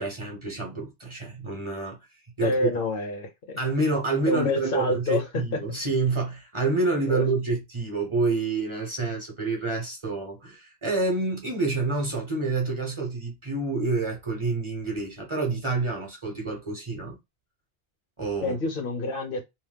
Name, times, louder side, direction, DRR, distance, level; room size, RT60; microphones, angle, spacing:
voice 1, 0.0-2.0 2.4-2.7 3.6-17.2 18.2-18.6, right 3 dB, 30° right, 0.8 m, -28 dB
voice 2, 2.4-3.6 4.3-5.6 7.1-7.3 18.4-19.4, left 2 dB, 60° left, 0.9 m, -28 dB
2.8 x 2.1 x 3.3 m
omnidirectional pair, 1.0 m